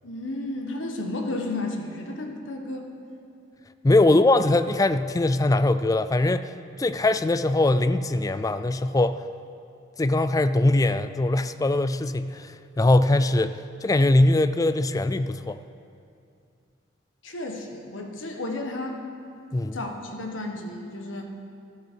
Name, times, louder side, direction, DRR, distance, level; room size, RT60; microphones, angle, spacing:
voice 1, 0.0-2.9 4.0-4.2 17.2-19.1 19.7-21.2, left 2 dB, 85° left, 3 dB, 1.5 m, -33 dB
voice 2, 3.8-6.5 6.8-9.2 10.0-15.6 19.5-19.8, left 2 dB, 20° left, 12 dB, 0.3 m, -21 dB
14.0 x 12.5 x 4.7 m, 2.5 s
head